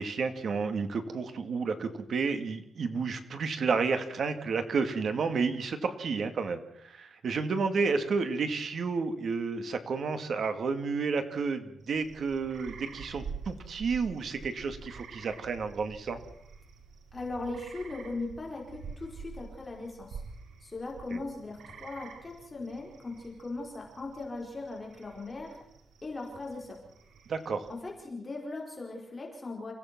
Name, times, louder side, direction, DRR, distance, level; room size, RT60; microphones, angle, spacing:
voice 1, 0.0-16.2 21.1-21.2 27.3-27.7, right 4 dB, 50° right, 8 dB, 2.2 m, -31 dB
sound 1, 11.8-28.0, right 5 dB, 80° right, 2.8 m, -48 dB
voice 2, 17.1-20.2 20.6-25.6 26.0-26.8 27.7-29.7, left 2 dB, 20° left, 0 dB, 4.6 m, -39 dB
29.0 x 16.0 x 6.1 m, 0.74 s
wide cardioid pair, 160°, 0 cm